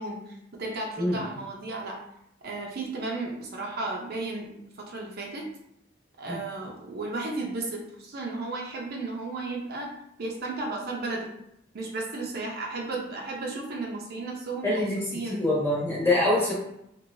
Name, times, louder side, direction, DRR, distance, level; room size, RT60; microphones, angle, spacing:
voice 1, 0.0-2.0 2.4-5.5 6.2-9.9 10.2-11.3 11.7-14.8 15.1-15.5, right 2 dB, 50° right, -1 dB, 0.5 m, -34 dB
voice 2, 14.6-16.5, left 1 dB, 10° left, -6 dB, 1.0 m, -25 dB
3.0 x 2.9 x 2.6 m, 0.80 s
head